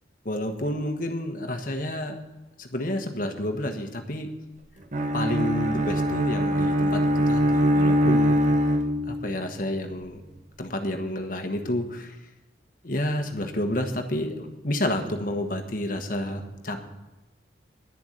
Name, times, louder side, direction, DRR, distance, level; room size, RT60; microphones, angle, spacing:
voice 1, 0.2-2.2 2.6-4.3 5.1-8.4 9.1-10.2 10.6-12.2 12.8-16.8, left 1 dB, 45° left, 5 dB, 1.3 m, -30 dB
Bowed string instrument, 4.9-9.3, equal, 40° right, 1.0 m, -22 dB
11.0 x 7.0 x 8.5 m, 1.1 s
head